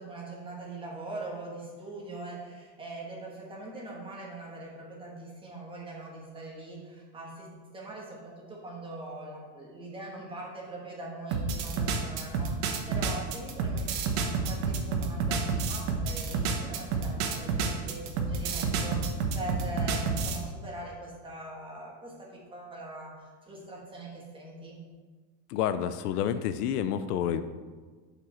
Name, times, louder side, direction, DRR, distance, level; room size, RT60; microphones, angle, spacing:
voice 1, 0.0-7.5 7.7-24.8, right 2 dB, 10° right, -3 dB, 1.3 m, -42 dB
sound 1, 11.3-20.4, right 5 dB, 50° right, 1.1 m, -29 dB
voice 2, 25.5-27.4, left 9 dB, 70° left, 11 dB, 0.6 m, -29 dB
10.5 x 5.2 x 4.3 m, 1.4 s
supercardioid pair, 170°, 50 cm